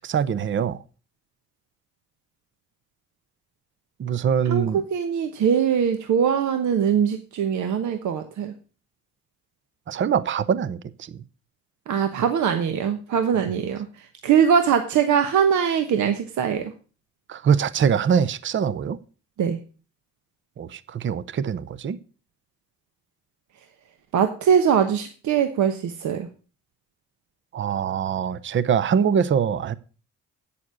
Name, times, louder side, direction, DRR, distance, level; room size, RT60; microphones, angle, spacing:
voice 1, 0.0-0.8 4.0-4.8 9.9-10.8 17.3-19.0 20.6-22.0 27.5-29.8, right 7 dB, 40° right, 0.6 m, -23 dB
voice 2, 4.4-8.5 11.9-16.7 19.4-19.6 24.1-26.3, right 7 dB, 70° right, 1.1 m, -22 dB
8.6 x 7.0 x 6.3 m
cardioid pair, 90°, 30 cm